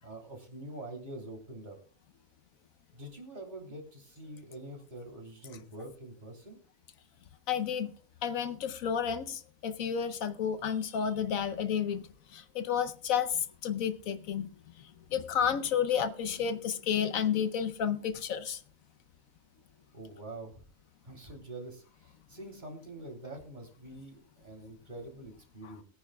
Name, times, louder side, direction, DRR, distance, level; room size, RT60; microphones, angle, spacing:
voice 1, 0.0-1.8 2.9-6.6 19.9-20.6 21.0-25.8, right 1 dB, 35° right, 3.3 m, -45 dB
voice 2, 7.5-7.9 8.2-14.5 15.1-18.6 25.6-25.7, left 8 dB, 75° left, 1.1 m, -31 dB
21.5 x 9.8 x 2.3 m
omnidirectional pair, 1.5 m